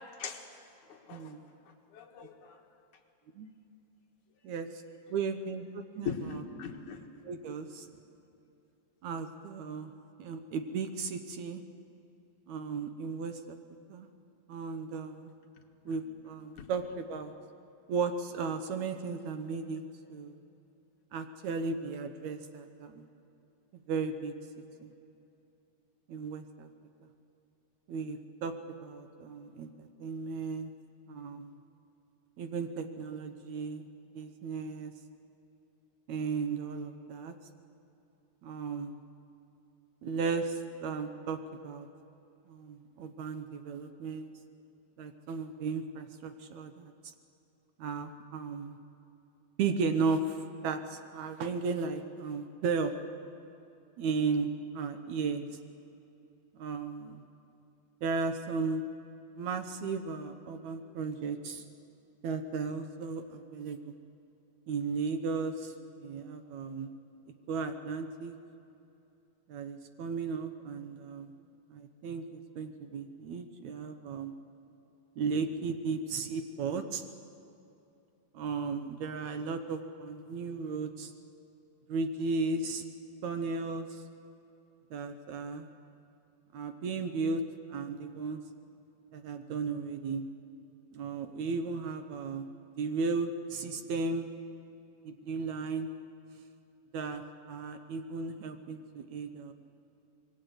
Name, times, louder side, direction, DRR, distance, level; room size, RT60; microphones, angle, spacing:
voice 1, 1.1-1.4 3.4-3.5 4.4-4.8 5.1-6.4 7.2-7.9 9.0-9.9 10.2-11.6 12.5-13.6 13.9-14.1 14.5-15.3 15.9-17.3 17.9-19.8 20.1-20.4 21.1-23.1 23.9-24.3 24.8-24.9 26.1-26.7 27.9-28.5 28.8-30.7 31.1-31.5 32.4-33.8 34.1-34.9 36.1-37.3 38.4-38.9 40.0-41.9 42.5-44.3 45.0-46.9 47.8-48.8 49.6-53.0 54.0-54.5 54.7-55.5 56.6-57.2 58.0-58.8 59.4-61.6 62.2-63.9 64.7-65.7 66.0-66.9 67.5-68.4 69.5-71.3 71.7-74.3 75.2-77.1 78.3-81.1 81.9-82.8 83.2-84.0 84.9-85.7 86.5-87.4 87.7-88.4 89.1-90.3 90.9-92.5 92.8-94.3 95.1-95.9 96.9-99.5, right 4 dB, 75° right, 8 dB, 1.7 m, -35 dB
voice 2, 1.9-2.6 6.1-7.0 16.6-16.7, left 6 dB, 60° left, 2 dB, 2.6 m, -39 dB
26.0 x 21.5 x 7.9 m, 2.8 s
omnidirectional pair, 4.4 m